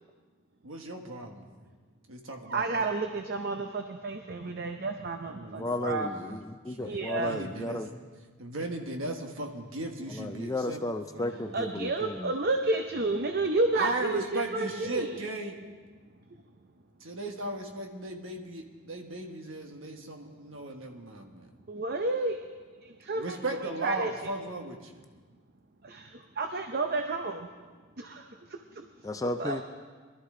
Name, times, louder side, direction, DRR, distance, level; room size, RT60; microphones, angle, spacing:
voice 1, 0.6-1.5 2.1-2.9 5.3-6.4 6.7-7.9 8.4-10.8 11.1-11.6 13.7-15.6 17.0-21.5 23.1-25.0, right 2 dB, 60° right, 3 dB, 1.4 m, -37 dB
voice 2, 2.5-6.1 6.8-7.4 11.5-15.2 21.7-22.4 23.1-24.1 25.8-27.5 28.0-28.9 29.4-29.6, right 3 dB, 45° right, 5 dB, 0.6 m, -31 dB
voice 3, 5.6-7.9 10.1-12.3 29.0-29.6, left 1 dB, 15° left, 7 dB, 0.4 m, -34 dB
21.5 x 12.5 x 3.8 m, 1.4 s
head